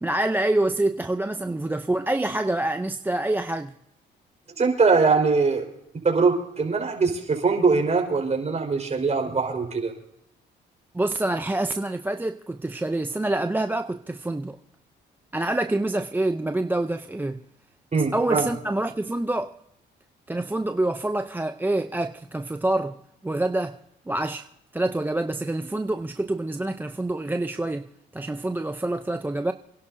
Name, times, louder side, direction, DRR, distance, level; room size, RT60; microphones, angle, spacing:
voice 1, 0.0-3.7 10.9-14.6 15.3-17.4 17.9-19.5 20.3-23.8 24.1-24.5 24.7-29.5, right 2 dB, 10° right, 0.5 m, -26 dB
voice 2, 4.6-5.7 5.9-9.9 17.9-18.5, right 4 dB, 35° right, 4.4 m, -22 dB
28.5 x 11.5 x 2.7 m
cardioid pair, 90°, 20 cm